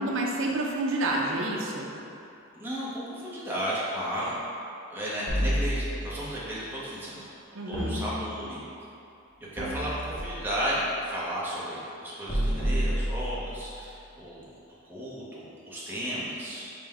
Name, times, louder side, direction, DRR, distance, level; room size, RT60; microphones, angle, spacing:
voice 1, 0.0-1.9 7.5-8.1, right 2 dB, 65° right, -2 dB, 0.5 m, -29 dB
voice 2, 2.5-4.3 4.9-7.3 7.5-8.6 9.5-14.5 14.9-16.7, equal, 10° right, -8 dB, 0.7 m, -34 dB
sound 1, 5.3-6.3 7.7-8.7 9.6-10.6 12.3-13.7, equal, 25° left, 0.7 m, -30 dB
5.2 x 2.1 x 3.4 m, 2.7 s
head